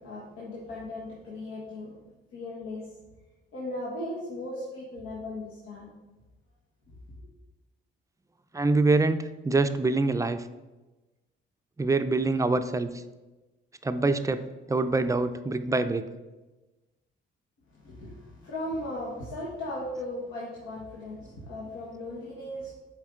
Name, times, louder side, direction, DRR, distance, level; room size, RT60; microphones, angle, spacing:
voice 1, 0.0-2.0 2.3-2.9 3.5-5.9 6.9-7.3 17.7-22.7, left 1 dB, 90° left, -6 dB, 1.5 m, -37 dB
voice 2, 8.5-10.5 11.8-13.0 13.8-16.0, right 3 dB, 15° right, 10 dB, 0.4 m, -25 dB
7.4 x 4.5 x 3.7 m, 1.1 s
cardioid pair, 90°, 20 cm